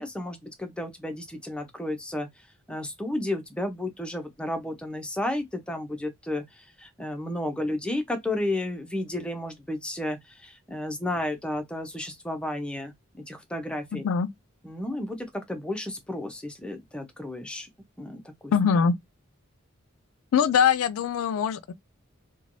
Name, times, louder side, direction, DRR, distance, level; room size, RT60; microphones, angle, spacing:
voice 1, 0.0-2.3 2.7-12.9 13.3-14.1 14.6-17.7 18.0-18.5, left 1 dB, 5° left, 0.6 m, -32 dB
voice 2, 13.9-14.3 18.5-19.0 20.3-21.7, left 7 dB, 85° left, 0.4 m, -22 dB
3.1 x 2.2 x 2.5 m
head